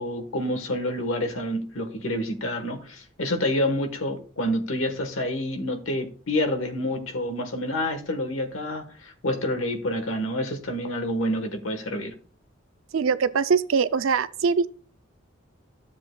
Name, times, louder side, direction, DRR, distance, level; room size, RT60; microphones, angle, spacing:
voice 1, 0.0-12.1, left 1 dB, 80° left, 1.2 m, -28 dB
voice 2, 12.9-14.7, right 5 dB, 85° right, 0.5 m, -22 dB
12.5 x 7.3 x 2.2 m
head